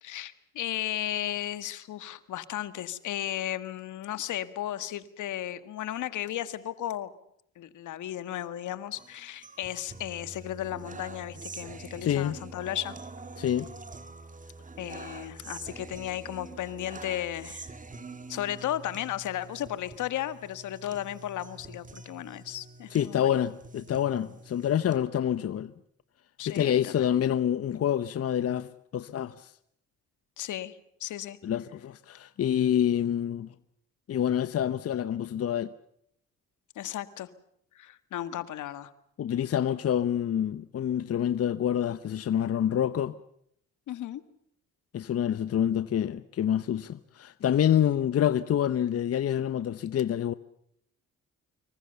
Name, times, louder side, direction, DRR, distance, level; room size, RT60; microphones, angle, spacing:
voice 1, 0.0-7.1 7.6-13.0 14.8-17.8 18.3-23.4 26.4-27.1 30.4-31.4 36.8-37.3 37.8-38.9 43.9-44.2, left 12 dB, 80° left, 1.7 m, -35 dB
sound 1, 9.0-25.0, right 3 dB, 25° right, 2.0 m, -46 dB
voice 2, 12.0-12.4 13.4-13.7 22.9-25.7 26.5-29.5 31.4-33.5 34.1-35.7 39.2-43.1 44.9-50.3, left 10 dB, 50° left, 0.9 m, -27 dB
25.5 x 23.0 x 6.9 m
cardioid pair, 90°, 30 cm